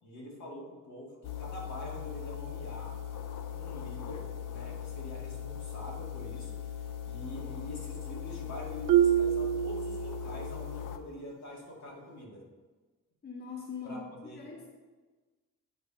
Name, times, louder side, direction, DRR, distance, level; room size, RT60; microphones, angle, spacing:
voice 1, 0.0-3.0 3.5-12.4 13.8-14.5, left 1 dB, 60° left, -2 dB, 2.0 m, -45 dB
sound 1, 1.2-11.0, left 9 dB, 80° left, 0.6 m, -40 dB
Marimba xylophone, 8.9-10.6, right 11 dB, 85° right, 0.5 m, -26 dB
voice 2, 13.2-14.1 14.3-14.7, left 5 dB, 30° left, -1 dB, 0.9 m, -41 dB
8.2 x 3.4 x 5.4 m, 1.3 s
cardioid pair, 110°, 31 cm